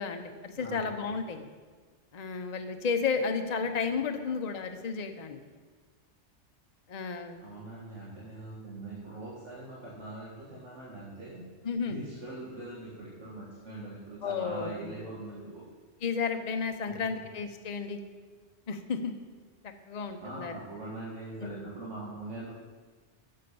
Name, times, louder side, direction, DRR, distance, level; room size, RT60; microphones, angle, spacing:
voice 1, 0.0-1.5 2.1-5.4 6.9-7.4 11.6-12.0 14.2-14.9 16.0-18.0 18.7-19.1 19.9-20.5 21.4-21.7, left 5 dB, 40° left, 6 dB, 0.8 m, -32 dB
voice 2, 7.4-11.4 11.8-15.6 16.8-17.2 20.2-22.5, right 2 dB, 85° right, -7 dB, 2.2 m, -42 dB
9.5 x 6.7 x 6.9 m, 1.4 s
omnidirectional pair, 1.2 m